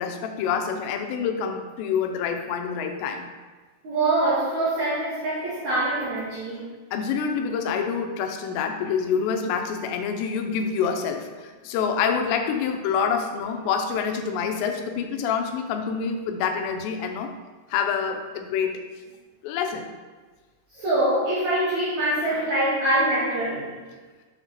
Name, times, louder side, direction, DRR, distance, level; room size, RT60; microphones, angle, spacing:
voice 1, 0.0-3.3 6.9-17.3 17.7-18.8 19.4-19.9, left 6 dB, 90° left, 5 dB, 2.9 m, -27 dB
voice 2, 3.8-6.7 20.7-23.7, right 1 dB, 65° right, -8 dB, 1.9 m, -24 dB
7.6 x 4.2 x 4.0 m, 1.3 s
omnidirectional pair, 4.9 m